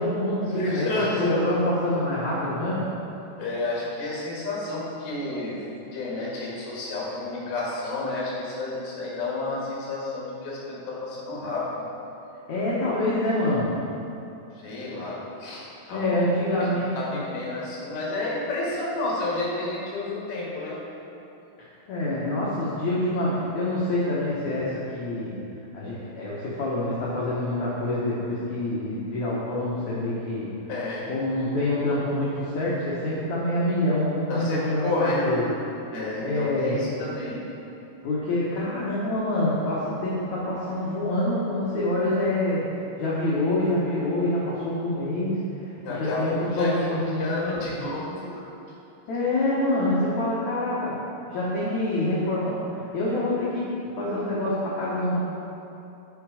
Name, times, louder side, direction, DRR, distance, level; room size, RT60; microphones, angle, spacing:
voice 1, 0.0-0.8 1.2-2.9 12.5-13.8 15.9-17.2 21.6-25.4 25.7-30.5 31.1-35.6 36.2-36.8 38.0-42.7 43.0-45.4 45.9-47.4 49.1-51.0 51.3-53.6 53.9-55.2, left 1 dB, 80° left, -7 dB, 1.6 m, -26 dB
voice 2, 0.5-1.5 3.4-5.6 5.9-11.8 14.6-16.2 16.6-20.8 30.7-31.1 34.3-35.5 35.9-37.4 45.8-48.4, left 2 dB, 65° left, -5 dB, 3.5 m, -30 dB
8.6 x 5.8 x 4.9 m, 2.8 s
omnidirectional pair, 5.1 m